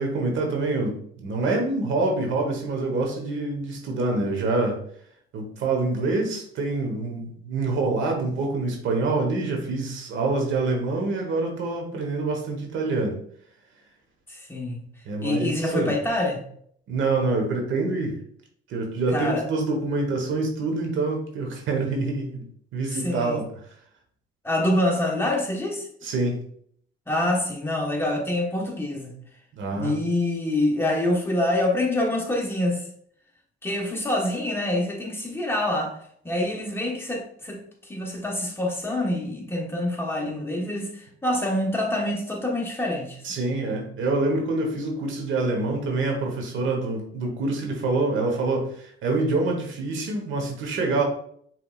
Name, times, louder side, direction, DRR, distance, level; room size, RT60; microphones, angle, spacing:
voice 1, 0.0-4.8 5.3-13.2 15.0-15.9 16.9-18.2 18.7-22.4 22.7-23.5 26.0-26.4 29.5-29.9 43.2-51.0, right 3 dB, 80° right, 1.2 m, -26 dB
voice 2, 14.3-14.8 15.2-16.4 19.1-19.5 22.9-23.4 24.4-25.9 27.1-29.2 29.7-32.8 33.6-35.9 36.2-43.4, left 1 dB, 10° left, 1.2 m, -26 dB
5.8 x 3.5 x 2.4 m
cardioid pair, 90°, 20 cm